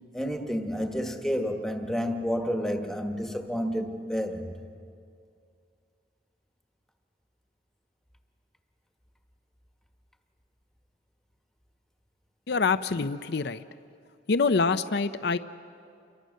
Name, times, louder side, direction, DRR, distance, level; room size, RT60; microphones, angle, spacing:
voice 1, 0.1-4.5, equal, 5° left, 1.4 m, -30 dB
voice 2, 12.5-13.6 14.3-15.4, left 4 dB, 60° left, 0.6 m, -25 dB
28.5 x 23.5 x 6.5 m
head